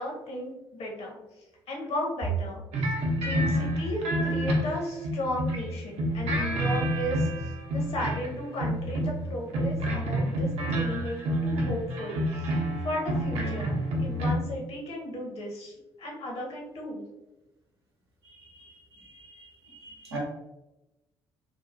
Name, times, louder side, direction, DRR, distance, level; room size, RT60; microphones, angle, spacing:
voice 1, 0.0-2.9 3.2-17.1, left 1 dB, 50° left, -1 dB, 0.9 m, -35 dB
sound 1, 2.7-5.7 6.0-8.3 8.6-14.3, equal, 55° right, 0.6 m, -28 dB
voice 2, 18.4-20.2, right 3 dB, 90° right, -5 dB, 0.7 m, -45 dB
2.8 x 2.3 x 2.5 m, 0.98 s
figure-of-eight pair, 45°, 13 cm